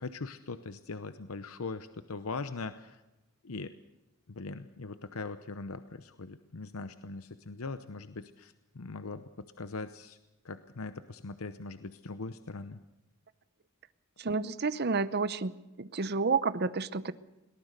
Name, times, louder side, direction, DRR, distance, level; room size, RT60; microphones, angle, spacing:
voice 1, 0.0-3.0 3.4-3.7 4.3-10.2 10.4-12.8, left 3 dB, 90° left, 11 dB, 0.8 m, -41 dB
voice 2, 14.2-15.5 15.8-17.1, right 4 dB, 50° right, 15 dB, 0.8 m, -30 dB
22.0 x 18.5 x 6.6 m, 1.0 s
head